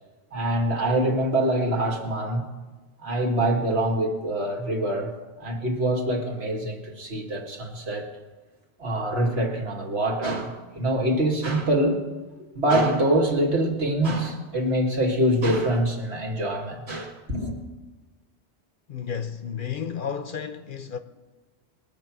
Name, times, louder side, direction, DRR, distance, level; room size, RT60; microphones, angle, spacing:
voice 1, 0.3-2.4 3.0-5.1 5.4-8.1 8.8-12.0 12.6-17.6, right 1 dB, 70° right, 2.2 m, -24 dB
voice 2, 18.9-21.0, left 7 dB, 55° left, 0.8 m, -32 dB
21.0 x 7.5 x 6.1 m
omnidirectional pair, 1.1 m